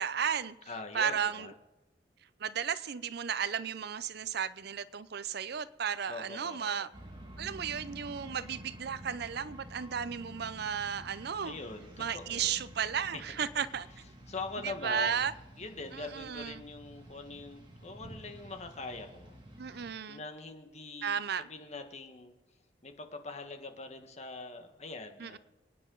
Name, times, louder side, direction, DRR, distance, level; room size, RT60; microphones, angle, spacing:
voice 1, 0.0-0.5 0.9-1.5 2.4-6.9 7.4-11.6 12.0-13.9 14.6-15.3 15.9-16.6 19.6-20.2 21.0-21.5 25.2-25.4, right 7 dB, 60° right, 16 dB, 0.6 m, -34 dB
voice 2, 0.7-1.5 6.1-6.8 11.4-12.5 13.1-13.2 14.3-15.3 15.6-19.3 19.7-22.3 22.8-25.4, left 3 dB, 40° left, 6 dB, 1.5 m, -43 dB
sound 1, 6.9-19.9, right 1 dB, 25° right, 2.4 m, -50 dB
27.5 x 9.5 x 3.9 m, 1.0 s
head